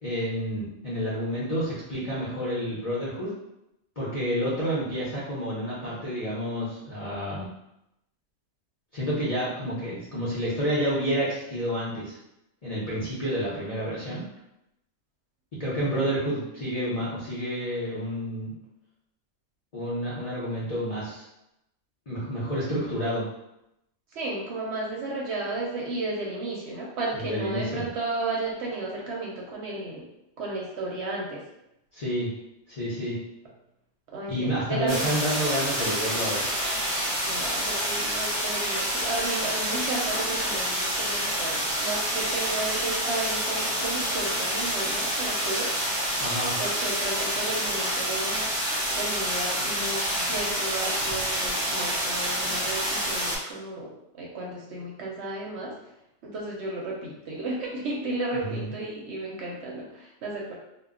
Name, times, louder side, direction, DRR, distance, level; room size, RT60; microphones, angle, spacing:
voice 1, 0.0-3.3 4.0-7.5 8.9-12.2 12.6-14.2 15.6-18.5 19.7-21.2 22.1-23.3 27.1-27.9 31.9-32.3 32.7-33.2 34.3-36.5 46.2-46.6 58.3-58.7, equal, 45° left, -9 dB, 0.5 m, -29 dB
voice 2, 24.1-30.0 30.4-31.4 34.1-35.1 35.8-36.0 37.3-45.8 46.6-48.4 48.9-55.7 56.2-60.6, right 2 dB, 65° right, -3 dB, 0.8 m, -33 dB
sound 1, 34.9-53.4, equal, 25° right, 0.6 m, -28 dB
2.2 x 2.0 x 3.5 m, 0.85 s
omnidirectional pair, 1.4 m